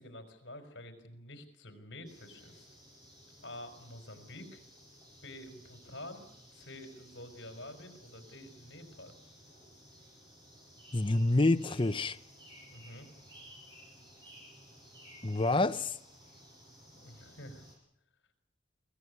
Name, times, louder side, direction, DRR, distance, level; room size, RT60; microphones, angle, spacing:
voice 1, 0.0-2.7 3.4-4.6 5.2-6.3 6.5-9.1 12.7-13.1 16.9-17.6, left 1 dB, 65° left, 4.4 m, -48 dB
sound 1, 2.0-17.7, equal, 25° right, 7.2 m, -56 dB
voice 2, 10.9-12.2 15.2-16.0, left 2 dB, 25° left, 0.8 m, -27 dB
23.0 x 17.0 x 9.6 m
head